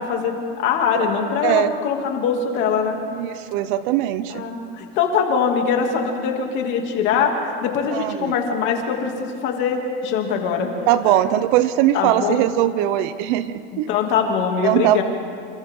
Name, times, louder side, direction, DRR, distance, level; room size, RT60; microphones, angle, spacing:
voice 1, 0.0-3.0 4.3-7.3 7.6-10.7 11.9-12.4 13.9-15.0, left 6 dB, 40° left, 2 dB, 2.8 m, -22 dB
voice 2, 1.4-1.7 3.1-4.4 7.9-8.3 10.9-13.9 14.6-15.0, right 13 dB, 50° right, 12 dB, 0.8 m, -20 dB
29.5 x 28.5 x 3.8 m, 2.5 s
supercardioid pair, 175°, 30 cm